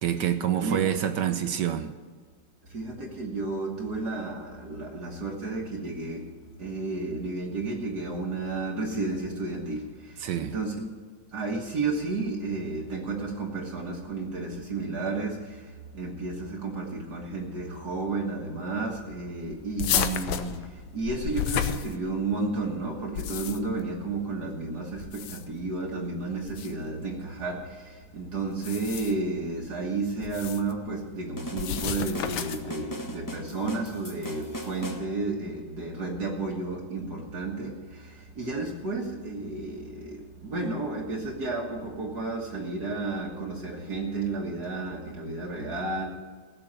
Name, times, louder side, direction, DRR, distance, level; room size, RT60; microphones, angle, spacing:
voice 1, 0.0-1.9 10.2-10.5, right 9 dB, 70° right, 1.2 m, -27 dB
voice 2, 0.6-0.9 2.6-10.9 11.3-46.1, right 3 dB, 50° right, 2.0 m, -32 dB
sound 1, 19.8-22.4 23.0-23.8 25.0-25.6 26.5-26.7 28.5-29.3 30.2-30.7 31.6-32.7, left 9 dB, 75° left, 1.5 m, -31 dB
sound 2, 31.4-35.1, left 1 dB, 30° left, 0.3 m, -39 dB
16.0 x 6.9 x 8.8 m
omnidirectional pair, 2.3 m